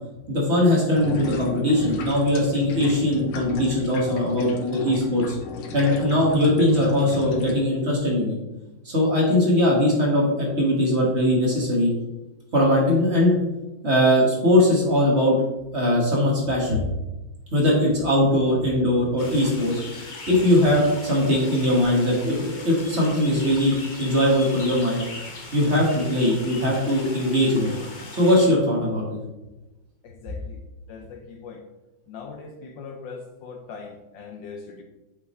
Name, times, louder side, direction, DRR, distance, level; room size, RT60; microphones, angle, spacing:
voice 1, 0.3-5.4 5.7-8.4 8.8-11.9 12.5-13.3 13.8-15.4 15.7-16.9 17.5-19.8 20.3-23.7 24.0-25.0 25.5-27.7 28.1-29.2, left 1 dB, 35° right, -3 dB, 1.5 m, -20 dB
sound 1, 0.9-7.6, left 4 dB, 90° left, 1.7 m, -35 dB
sound 2, 19.2-28.5, left 2 dB, 50° left, 0.5 m, -39 dB
voice 2, 30.0-30.6 30.9-31.6 32.1-34.8, left 5 dB, 70° left, 4 dB, 1.2 m, -40 dB
7.5 x 5.9 x 3.1 m, 1.0 s
omnidirectional pair, 2.3 m